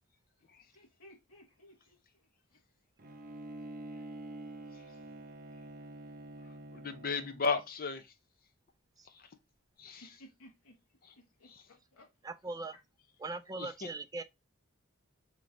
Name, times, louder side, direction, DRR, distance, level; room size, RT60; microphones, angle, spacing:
voice 1, 0.7-2.0 2.5-2.6 10.2-10.8 11.1-12.1, equal, 75° left, 1.2 m, -58 dB
Bowed string instrument, 3.0-7.7, right 1 dB, 45° right, 0.8 m, -47 dB
voice 2, 6.7-8.0 9.8-10.1 11.5-11.6 13.6-13.7, left 4 dB, 45° left, 0.7 m, -34 dB
voice 3, 12.2-12.8 13.2-14.2, right 3 dB, 15° right, 0.4 m, -40 dB
3.7 x 3.0 x 3.8 m
head